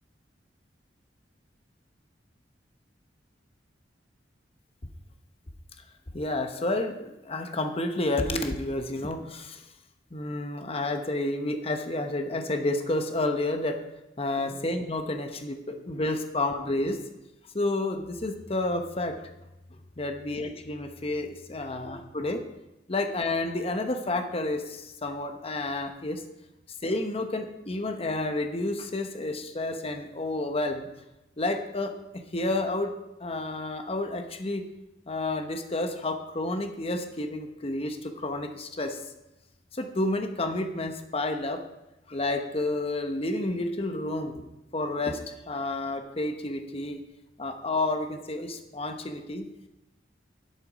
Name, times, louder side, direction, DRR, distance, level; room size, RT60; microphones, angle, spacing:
voice 1, 6.1-9.7 10.1-13.8 14.2-17.0 17.5-19.3 19.7-22.4 22.9-26.2 26.8-30.9 31.4-31.9 32.3-32.9 33.2-34.7 35.1-39.0 39.7-41.6 42.1-44.4 44.7-47.0 47.4-49.5, left 2 dB, 30° left, 6 dB, 1.0 m, -30 dB
11.0 x 7.8 x 5.0 m, 0.95 s
head